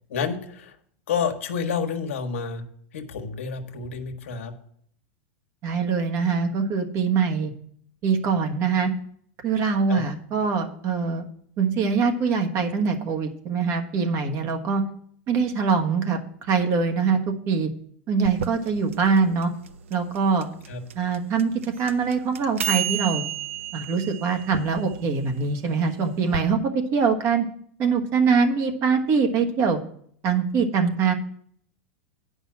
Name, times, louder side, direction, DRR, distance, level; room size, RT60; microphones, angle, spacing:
voice 1, 0.1-0.8 1.1-2.6 2.9-4.5 9.9-10.0 20.7-20.8, left 6 dB, 80° left, 4 dB, 1.3 m, -29 dB
voice 2, 5.6-7.5 8.0-8.9 9.4-11.2 11.6-14.8 15.3-16.2 16.5-17.2 17.5-17.7 18.1-19.5 19.9-20.5 20.9-21.5 21.8-23.2 23.7-27.4 27.8-29.8 30.2-31.1, right 5 dB, 40° right, 5 dB, 1.4 m, -23 dB
sound 1, 18.2-26.4, right 10 dB, 85° right, 0.5 m, -33 dB
9.2 x 5.4 x 7.3 m, 0.63 s
hypercardioid pair, 125°, 7 cm